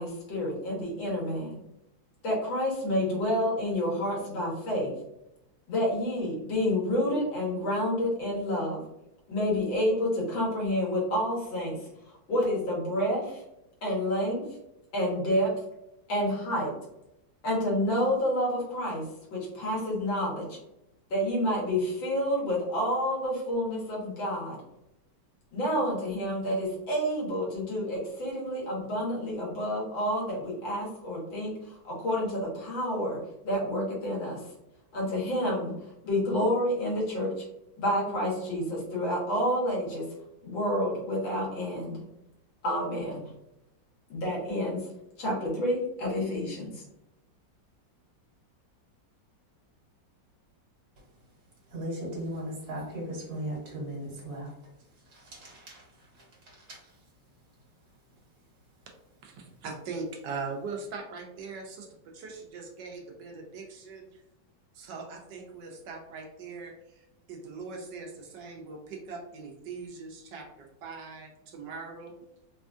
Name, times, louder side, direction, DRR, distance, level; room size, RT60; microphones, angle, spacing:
voice 1, 0.0-1.5 2.2-4.9 5.7-8.8 9.3-13.4 13.8-14.4 14.9-15.5 16.1-16.7 17.4-19.0 19.3-20.6 21.1-24.6 25.5-34.4 34.9-35.7 36.0-37.3 37.8-40.0 40.4-42.0 42.6-43.2 44.1-44.9 45.2-46.8, equal, 85° left, -4 dB, 2.1 m, -29 dB
voice 2, 51.7-54.5 55.1-56.8, right 1 dB, 55° right, -3 dB, 1.6 m, -38 dB
voice 3, 59.2-64.2 64.7-72.1, right 4 dB, 75° right, 2 dB, 1.2 m, -41 dB
4.2 x 2.3 x 2.5 m, 0.87 s
omnidirectional pair, 2.1 m